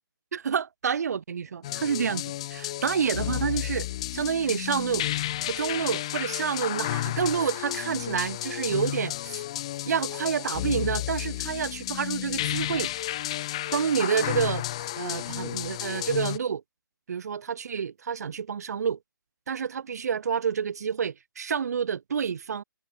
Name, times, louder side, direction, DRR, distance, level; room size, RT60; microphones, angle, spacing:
voice 1, 0.3-3.9 4.1-5.1 5.5-9.4 9.9-12.9 13.7-14.6 15.0-16.6 17.1-19.0 19.5-22.6, right 7 dB, 45° right, 1.7 m, -28 dB
sound 1, 1.6-16.4, left 14 dB, 15° left, 0.6 m, -32 dB
hypercardioid pair, 180°, 12 cm